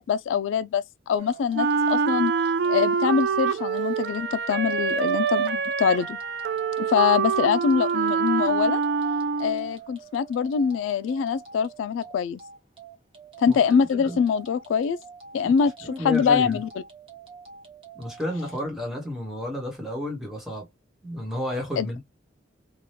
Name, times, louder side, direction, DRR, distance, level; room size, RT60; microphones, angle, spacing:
voice 1, 0.0-2.3 2.7-6.2 6.8-8.8 9.4-12.4 13.4-15.0 15.3-16.7 21.8-21.9, left 6 dB, 85° left, 0.3 m, -24 dB
sound 1, 1.2-18.7, right 5 dB, 30° right, 1.0 m, -46 dB
Wind instrument woodwind instrument, 1.5-9.7, right 6 dB, 60° right, 0.4 m, -25 dB
voice 2, 13.5-14.2 15.8-16.6 17.9-20.7 21.0-22.0, left 1 dB, ahead, 1.1 m, -32 dB
2.8 x 2.2 x 3.2 m
head